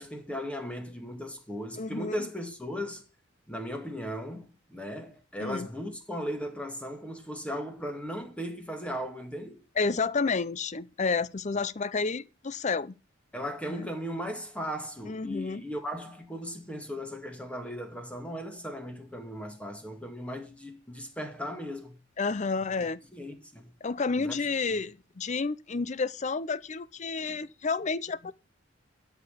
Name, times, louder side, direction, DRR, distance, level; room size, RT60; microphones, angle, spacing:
voice 1, 0.0-3.0 3.5-9.6 13.3-22.0 22.8-22.9 23.1-23.7 24.2-24.4 24.7-24.8, equal, 5° left, 2.0 m, -37 dB
voice 2, 1.8-2.3 5.4-5.7 9.8-12.9 13.7-13.9 15.0-15.6 22.2-23.0 23.8-28.3, left 4 dB, 40° left, 0.6 m, -30 dB
12.5 x 5.9 x 6.7 m
head